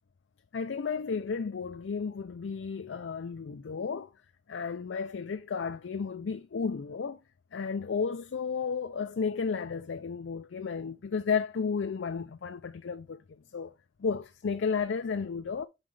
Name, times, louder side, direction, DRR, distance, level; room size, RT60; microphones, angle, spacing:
voice 1, 0.5-4.1 4.5-7.2 7.5-13.2 13.5-13.7 14.0-15.7, left 5 dB, 85° left, 0.5 m, -33 dB
5.7 x 4.3 x 4.8 m
head